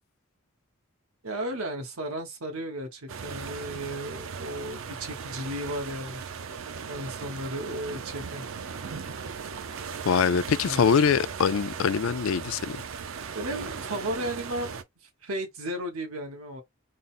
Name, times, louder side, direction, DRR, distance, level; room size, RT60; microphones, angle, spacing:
voice 1, 1.2-6.2 6.9-8.4 10.6-10.8 13.3-16.6, right 1 dB, 85° right, 1.2 m, -34 dB
sound 1, 3.1-14.8, right 6 dB, 70° right, 0.6 m, -38 dB
voice 2, 10.1-12.6, left 6 dB, 70° left, 0.4 m, -23 dB
3.8 x 2.1 x 4.0 m
head